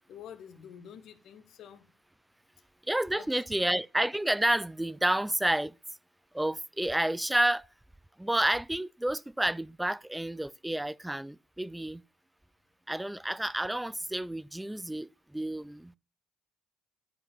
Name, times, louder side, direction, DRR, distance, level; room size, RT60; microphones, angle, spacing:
voice 1, 0.1-1.9 3.1-3.6, left 8 dB, 65° left, 1.5 m, -48 dB
voice 2, 2.9-5.8 6.3-7.7 8.2-12.0 12.9-15.9, right 1 dB, 5° right, 0.4 m, -30 dB
10.5 x 5.0 x 7.2 m
supercardioid pair, 75°, 0 cm